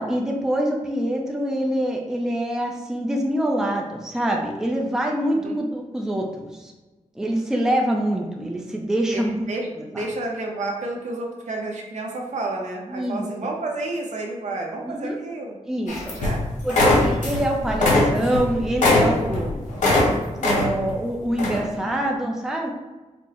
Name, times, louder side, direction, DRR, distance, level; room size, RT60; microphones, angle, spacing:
voice 1, 0.0-6.7 7.2-9.4 9.9-10.0 12.9-13.3 14.8-15.2 15.7-16.1 16.6-19.6 20.4-22.7, right 1 dB, 5° right, 0 dB, 0.4 m, -25 dB
voice 2, 9.1-15.6 16.1-16.4, right 2 dB, 70° right, 0 dB, 0.8 m, -30 dB
sound 1, 15.9-16.4 16.7-17.4 17.7-20.1 20.4-20.9 21.4-21.6, left 2 dB, 80° left, 1.1 m, -20 dB
4.4 x 2.0 x 4.2 m, 1.2 s
wide cardioid pair, 155°, 13 cm